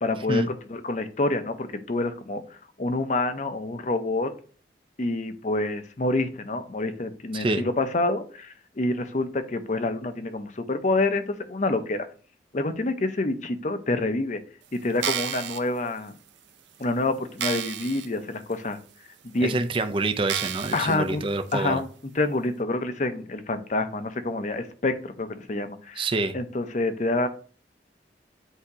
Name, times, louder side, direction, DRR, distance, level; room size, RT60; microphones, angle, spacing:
voice 1, 0.0-2.4 2.8-4.3 5.0-12.1 12.5-14.4 14.7-16.2 16.8-18.8 19.2-19.5 20.7-21.2 21.5-21.9 22.1-26.0 26.3-27.3, left 2 dB, 45° left, 0.7 m, -27 dB
voice 2, 7.3-7.6 19.4-21.8 26.0-26.4, right 2 dB, 30° right, 0.5 m, -26 dB
sound 1, 14.9-15.6 16.3-16.4 16.8-16.9 17.4-18.1 18.5-18.6 19.4-19.5 20.3-21.0 21.5-21.6, right 10 dB, 90° right, 0.7 m, -31 dB
8.2 x 2.8 x 4.8 m
head